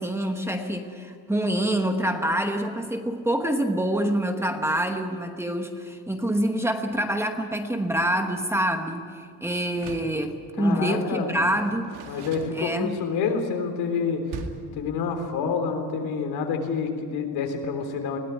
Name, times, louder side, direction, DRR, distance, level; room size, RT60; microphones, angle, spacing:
voice 1, 0.0-12.0 12.5-13.0, right 1 dB, 5° right, 5 dB, 1.1 m, -26 dB
Door, 9.7-10.2 11.4-13.1 14.3-14.8, right 5 dB, 85° right, 2.3 m, -40 dB
voice 2, 10.6-11.4 12.1-14.4 14.8-18.2, left 5 dB, 80° left, 5 dB, 3.7 m, -28 dB
21.5 x 17.0 x 9.6 m, 2.1 s
cardioid pair, 165°, 38 cm